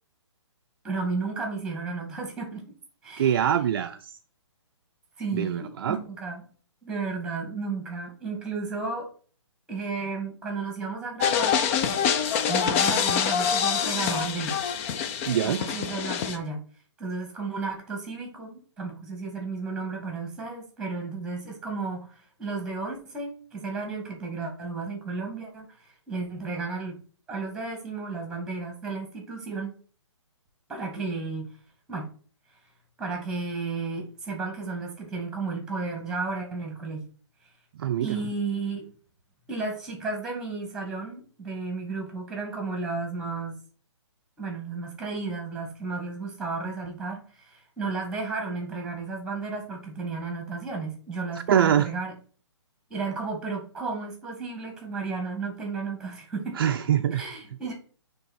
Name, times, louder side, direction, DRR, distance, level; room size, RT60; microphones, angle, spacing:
voice 1, 0.8-2.6 3.0-3.4 5.2-6.5 6.8-9.1 9.7-11.6 12.5-14.6 15.4-16.6 17.0-27.0 27.3-29.7 30.7-31.5 31.9-32.1 33.0-37.0 38.0-38.9 39.5-43.6 44.4-52.1 52.9-56.6 57.1-57.7, right 4 dB, 5° right, 3 dB, 2.0 m, -33 dB
voice 2, 3.2-4.1 5.3-6.0 15.3-15.6 37.8-38.2 51.5-51.9 56.6-57.2, right 9 dB, 50° right, 7 dB, 0.5 m, -24 dB
sound 1, 11.2-16.4, left 7 dB, 30° left, 0.6 m, -25 dB
8.9 x 3.5 x 4.4 m, 0.42 s
hypercardioid pair, 140°, 15 cm